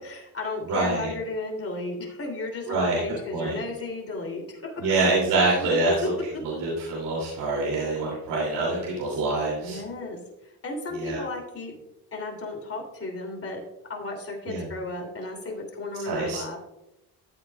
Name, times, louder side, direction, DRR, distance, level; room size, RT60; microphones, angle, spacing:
voice 1, 0.0-5.0 5.4-6.1 6.5-6.6 9.6-11.8 12.1-13.6 13.9-16.6, left 2 dB, 35° left, 1 dB, 3.1 m, -34 dB
voice 2, 0.7-1.1 2.7-3.0 3.3-3.6 4.8-6.1 6.6-9.8 10.9-11.2 14.5-14.6 16.0-16.4, right 2 dB, 80° right, -4 dB, 3.1 m, -25 dB
14.0 x 8.1 x 2.4 m, 0.90 s
cardioid pair, 110°, 41 cm